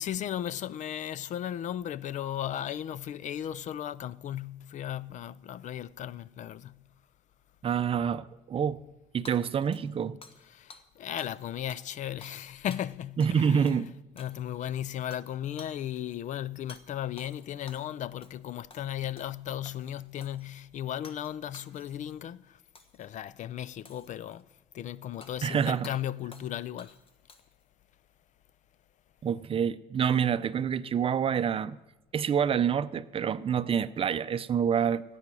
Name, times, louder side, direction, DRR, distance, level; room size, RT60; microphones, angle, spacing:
voice 1, 0.0-6.8 10.5-13.7 14.2-22.6 22.9-24.5 24.7-27.0, left 11 dB, 50° left, 0.4 m, -36 dB
voice 2, 7.6-8.8 9.1-10.2 13.2-13.9 25.4-25.9 29.2-31.8 32.1-35.0, right 7 dB, 35° right, 0.6 m, -27 dB
Hammer / Shatter, 9.2-10.4 10.7-10.8 11.2-11.4 11.7-13.4 13.7-13.8 14.2-14.6 15.1-15.3 15.6-15.8 16.7-16.8 17.2-17.9 18.2-18.4 18.7-19.3 19.6-20.4 21.0-21.3 21.5-22.1 22.7-23.1 23.8-24.4 25.2-25.3 25.8-26.0 26.3-26.5 26.8-27.6, left 4 dB, 35° left, 1.3 m, -52 dB
16.0 x 8.6 x 6.2 m
cardioid pair, 110°, 16 cm